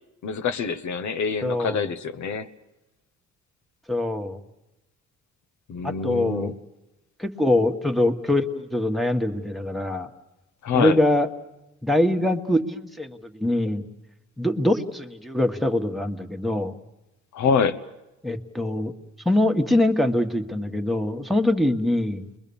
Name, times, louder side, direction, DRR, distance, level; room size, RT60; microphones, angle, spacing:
voice 1, 0.2-2.5 5.7-6.5 10.6-11.0 17.3-17.8, left 6 dB, 70° left, 9 dB, 1.2 m, -25 dB
voice 2, 1.4-1.9 3.9-4.4 5.8-6.5 7.2-10.1 10.7-11.3 11.8-13.9 14.4-16.7 18.2-18.9 19.3-22.3, left 1 dB, ahead, 3 dB, 1.6 m, -23 dB
30.0 x 21.5 x 7.1 m, 0.99 s
cardioid pair, 90°, 30 cm